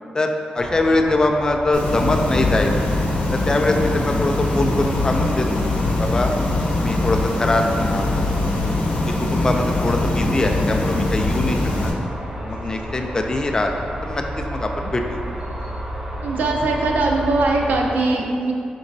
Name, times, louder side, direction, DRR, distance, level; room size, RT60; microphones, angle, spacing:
voice 1, 0.1-2.7 3.3-5.7 6.0-6.3 6.8-8.1 9.2-11.9 12.4-13.8 14.0-15.2, left 2 dB, 25° left, 3 dB, 0.3 m, -22 dB
sound 1, 0.5-17.9, equal, 35° right, 0.6 m, -32 dB
sound 2, 1.7-11.9, left 2 dB, 80° left, 0.7 m, -22 dB
voice 2, 16.2-18.5, right 2 dB, 85° right, 0 dB, 0.5 m, -20 dB
5.3 x 3.9 x 2.6 m, 2.5 s
wide cardioid pair, 135°, 3 cm